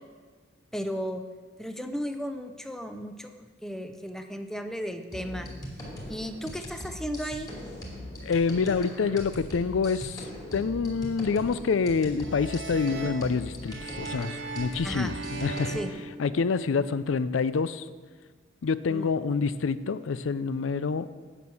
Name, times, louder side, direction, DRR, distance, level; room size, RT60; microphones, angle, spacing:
voice 1, 0.7-1.2 1.6-5.5 6.1-7.5 14.8-15.2 15.7-15.9 18.9-19.1, equal, ahead, 7 dB, 0.6 m, -35 dB
sound 1, 5.1-15.9, left 1 dB, 20° left, 2.5 m, -40 dB
voice 2, 8.2-10.3 10.5-15.8 16.2-17.9 18.6-21.1, left 5 dB, 75° left, 15 dB, 0.4 m, -27 dB
sound 2, 12.2-16.8, right 4 dB, 65° right, 0.8 m, -39 dB
9.0 x 6.1 x 7.7 m, 1.5 s
head